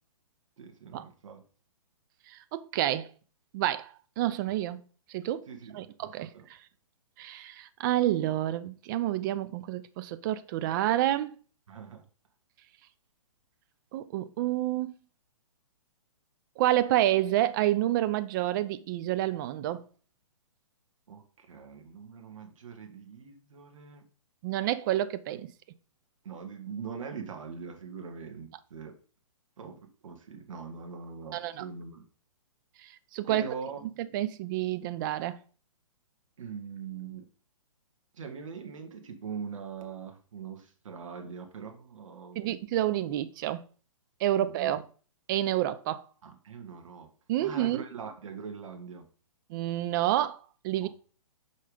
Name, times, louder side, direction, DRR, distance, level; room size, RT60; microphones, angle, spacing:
voice 1, 0.6-1.4 5.5-6.5 11.7-12.1 21.1-24.0 26.2-29.0 29.6-32.0 33.3-33.8 36.4-37.3 38.1-42.4 44.4-44.7 46.2-47.1 47.4-49.1 50.8-50.9, right 6 dB, 65° right, 1.9 m, -42 dB
voice 2, 2.3-3.1 3.5-4.8 5.1-5.5 5.7-6.3 7.2-11.3 13.9-14.9 16.6-19.8 24.4-25.5 31.3-31.7 32.8-33.5 34.1-35.4 42.4-43.6 44.2-44.8 45.3-46.0 47.3-47.8 49.5-50.9, right 13 dB, 35° right, 0.6 m, -29 dB
5.6 x 5.4 x 5.1 m
hypercardioid pair, 130°, 18 cm